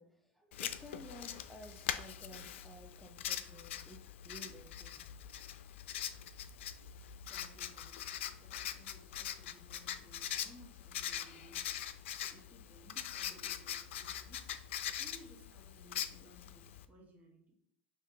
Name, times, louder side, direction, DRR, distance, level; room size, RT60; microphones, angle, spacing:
voice 1, 0.0-5.0, equal, ahead, 3 dB, 0.6 m, -54 dB
Writing, 0.5-16.8, left 10 dB, 75° left, 0.4 m, -42 dB
voice 2, 6.9-8.0 8.4-11.8 12.3-14.6 15.0-17.6, equal, 20° right, 1 dB, 1.1 m, -60 dB
5.1 x 2.8 x 3.5 m, 0.67 s
hypercardioid pair, 100°, 7 cm